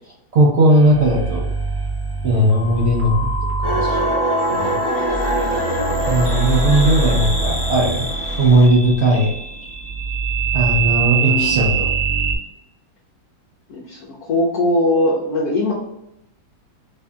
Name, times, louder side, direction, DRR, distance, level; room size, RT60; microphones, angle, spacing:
voice 1, 0.3-1.5 2.2-3.1 3.6-4.0 4.5-4.8 6.1-8.0 8.4-9.3 10.5-11.8, right 1 dB, 80° right, -4 dB, 0.5 m, -17 dB
sound 1, 0.7-12.4, right 4 dB, 10° right, 0.7 m, -23 dB
sound 2, 3.6-8.7, equal, 45° left, 0.5 m, -25 dB
voice 2, 4.9-5.7 11.2-11.8 13.7-15.7, left 1 dB, 60° left, -4 dB, 1.1 m, -21 dB
3.2 x 2.7 x 3.4 m, 0.83 s
omnidirectional pair, 2.1 m